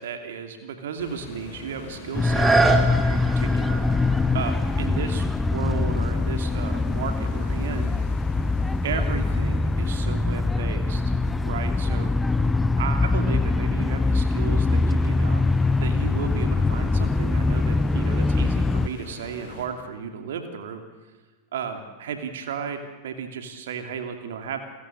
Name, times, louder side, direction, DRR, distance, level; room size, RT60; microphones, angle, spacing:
voice 1, 0.0-3.8 4.3-7.9 8.8-11.0 11.4-12.1 12.8-15.5 15.8-20.8 21.5-24.6, right 7 dB, 60° right, 6 dB, 2.7 m, -34 dB
sound 1, 1.0-19.7, left 4 dB, 45° left, 5.8 m, -43 dB
sound 2, 2.1-18.9, left 3 dB, 10° left, 0.6 m, -23 dB
sound 3, 2.1-7.8 8.4-8.5, right 3 dB, 15° right, 2.5 m, -28 dB
29.5 x 16.0 x 8.6 m, 1.3 s
figure-of-eight pair, 90°, 0 cm